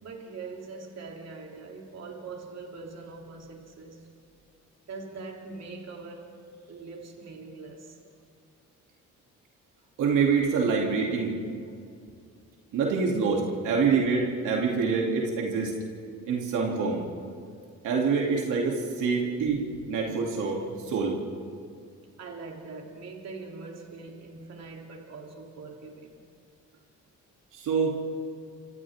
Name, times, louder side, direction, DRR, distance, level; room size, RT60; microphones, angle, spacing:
voice 1, 0.0-4.1 4.9-6.3 6.7-8.0 22.2-26.2, right 4 dB, 60° right, 0 dB, 3.4 m, -42 dB
voice 2, 10.0-11.3 12.7-15.7 16.3-17.0 17.8-20.6 20.8-21.2 27.5-27.9, right 5 dB, 85° right, -1 dB, 3.0 m, -26 dB
29.5 x 26.5 x 3.7 m, 2.3 s
cardioid pair, 90°, 30 cm